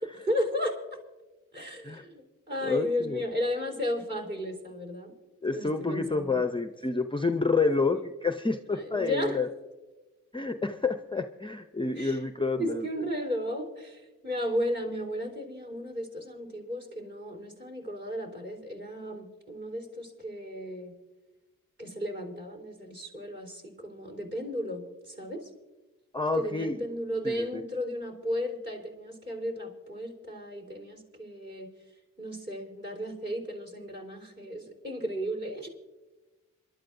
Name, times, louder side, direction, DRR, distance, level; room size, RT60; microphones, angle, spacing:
voice 1, 0.0-0.8 1.5-5.1 5.5-6.4 7.9-8.0 8.7-9.4 12.0-12.2 12.6-20.9 21.8-25.5 26.3-31.7 32.2-35.7, equal, 35° right, 1 dB, 4.0 m, -34 dB
voice 2, 2.6-3.2 5.4-9.5 10.3-12.8 26.1-26.8 27.2-27.5, left 3 dB, 15° left, 8 dB, 0.6 m, -29 dB
27.0 x 12.0 x 2.6 m, 1.1 s
cardioid pair, 75°, 32 cm